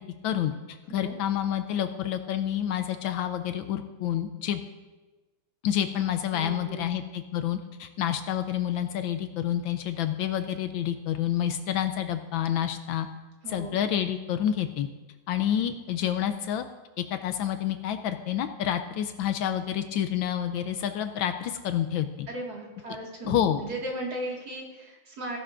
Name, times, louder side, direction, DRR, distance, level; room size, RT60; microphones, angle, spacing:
voice 1, 0.2-4.6 5.6-13.1 13.5-14.9 15.3-16.6 17.0-22.3 23.3-23.6, left 10 dB, 75° left, 8 dB, 1.3 m, -28 dB
voice 2, 6.3-6.9 13.4-13.8 22.3-25.4, right 1 dB, 50° right, -2 dB, 2.3 m, -36 dB
16.0 x 11.0 x 2.5 m, 1.2 s
omnidirectional pair, 2.3 m